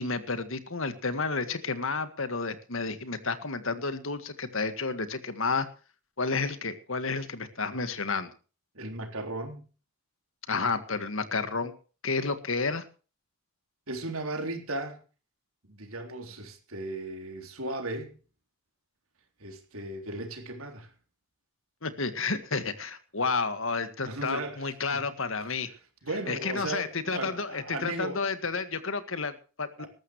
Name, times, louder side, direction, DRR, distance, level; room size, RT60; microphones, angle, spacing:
voice 1, 0.0-5.7 6.2-8.3 10.5-11.7 12.0-12.8 21.8-25.7 26.3-29.9, left 4 dB, 65° left, 1.8 m, -31 dB
voice 2, 8.7-9.6 13.9-15.0 15.7-18.1 19.4-20.9 24.1-25.0 26.0-28.2 29.8-29.9, right 2 dB, 75° right, 3.7 m, -36 dB
19.5 x 14.0 x 3.2 m
head